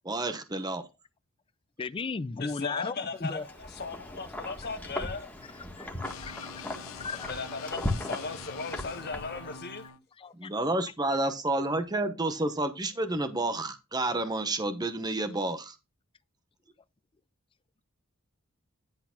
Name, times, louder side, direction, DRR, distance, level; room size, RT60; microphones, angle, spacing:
voice 1, 0.0-0.8 10.3-15.8, right 2 dB, 20° right, 0.9 m, -30 dB
voice 2, 1.8-3.5 5.5-6.7 6.9-7.3 10.2-10.5, left 4 dB, 25° left, 0.4 m, -36 dB
voice 3, 2.4-3.4 3.8-5.3 7.3-9.8, left 4 dB, 50° left, 1.6 m, -37 dB
Wind, 3.3-9.8, left 1 dB, 10° left, 1.6 m, -38 dB
sound 1, 6.0-10.0, left 6 dB, 70° left, 0.8 m, -45 dB
10.5 x 4.0 x 5.8 m
head